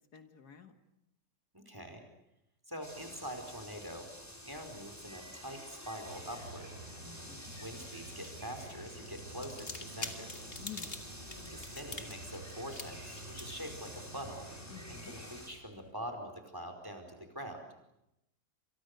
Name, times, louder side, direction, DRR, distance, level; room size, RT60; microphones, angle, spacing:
voice 1, 0.1-0.7 7.0-7.5 10.6-10.9 14.7-15.1, left 10 dB, 75° left, 7 dB, 2.4 m, -50 dB
voice 2, 1.5-2.0 2.7-4.1 4.4-6.7 7.6-10.3 11.5-14.5 14.9-17.6, equal, 15° right, 5 dB, 4.8 m, -44 dB
sound 1, 2.8-15.5, equal, 10° left, 4.3 m, -50 dB
sound 2, 6.1-15.3, right 2 dB, 45° right, 5.5 m, -51 dB
sound 3, 7.5-15.9, left 3 dB, 35° left, 2.5 m, -49 dB
29.0 x 27.5 x 6.8 m, 0.85 s
omnidirectional pair, 1.7 m